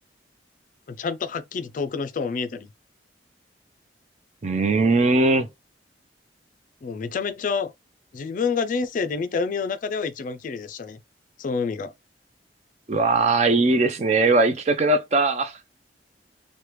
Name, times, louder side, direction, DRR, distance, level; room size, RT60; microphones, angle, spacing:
voice 1, 0.9-2.7 6.8-7.7 8.1-11.0 11.4-11.9, left 5 dB, 45° left, 0.3 m, -28 dB
voice 2, 4.4-5.5 12.9-15.6, right 3 dB, 40° right, 0.5 m, -20 dB
3.2 x 2.2 x 3.0 m
head